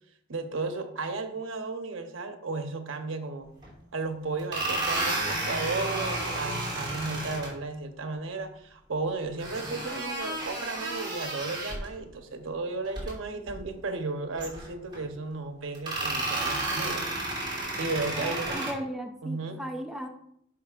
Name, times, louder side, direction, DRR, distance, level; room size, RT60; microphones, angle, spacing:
voice 1, 0.3-3.5 3.9-17.0 17.8-18.6 19.2-19.6, right 3 dB, 85° right, 6 dB, 0.9 m, -34 dB
sound 1, 3.6-3.7 4.4-7.5 9.4-11.9 12.8-13.1 13.5-13.6 14.4-15.0 15.7-18.7, right 2 dB, 25° right, 3.0 m, -32 dB
voice 2, 18.2-20.1, equal, ahead, 1 dB, 0.6 m, -36 dB
10.5 x 5.8 x 2.5 m, 0.72 s
head